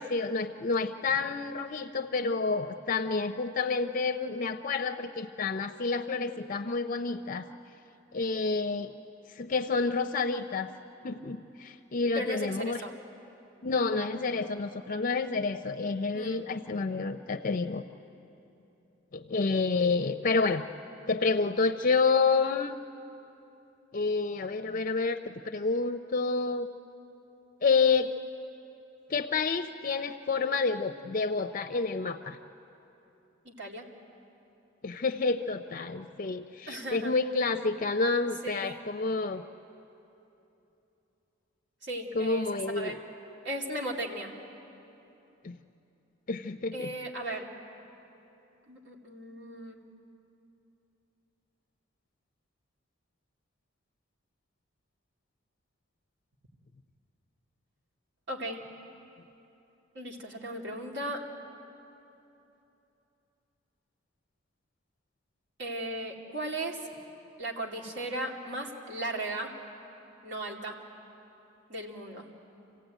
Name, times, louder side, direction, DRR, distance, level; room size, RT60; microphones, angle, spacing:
voice 1, 0.0-7.5 8.1-8.9 9.3-10.7 11.0-12.8 13.6-17.8 19.1-20.6 21.1-22.8 23.9-26.7 27.6-28.1 29.1-32.4 34.8-39.4 42.1-43.0 45.4-45.5 46.3-46.9, left 4 dB, 45° left, 8 dB, 0.5 m, -29 dB
voice 2, 12.1-12.9 16.1-16.5 33.4-33.8 36.7-37.1 38.4-38.8 41.8-42.5 42.7-43.0 43.4-44.3 46.7-47.5 48.7-49.9 58.3-58.6 59.9-61.2 65.6-66.8 67.4-69.5 70.2-70.8 71.7-72.3, right 1 dB, 65° right, 0 dB, 2.7 m, -36 dB
27.5 x 16.0 x 9.1 m, 2.9 s
head